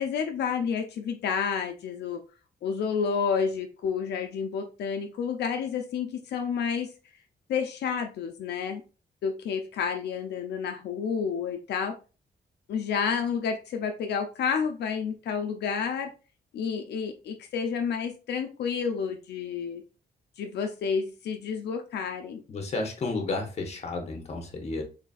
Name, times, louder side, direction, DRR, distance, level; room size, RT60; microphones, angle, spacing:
voice 1, 0.0-2.2 2.6-6.9 7.5-8.8 9.2-12.0 12.7-16.1 16.5-19.8 20.4-22.4, left 6 dB, 85° left, 5 dB, 0.4 m, -30 dB
voice 2, 22.5-24.8, left 3 dB, 40° left, 4 dB, 0.8 m, -32 dB
3.9 x 3.3 x 2.3 m, 0.33 s
wide cardioid pair, 155°, 17 cm